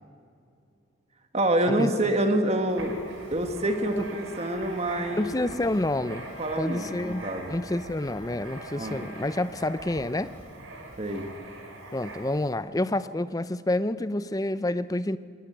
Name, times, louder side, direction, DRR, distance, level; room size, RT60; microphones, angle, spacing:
voice 1, 1.3-3.0 3.3-5.3 6.4-7.6 8.7-9.0 11.0-11.3, right 1 dB, 30° right, 6 dB, 1.5 m, -26 dB
Writing, 2.7-12.5, right 2 dB, 75° right, 4.3 m, -43 dB
Trumpet, 3.8-9.5, left 2 dB, 65° left, 7.2 m, -52 dB
voice 2, 5.1-6.3 6.6-10.3 11.9-15.2, left 1 dB, 15° left, 14 dB, 0.5 m, -28 dB
21.0 x 19.0 x 9.3 m, 2.5 s
head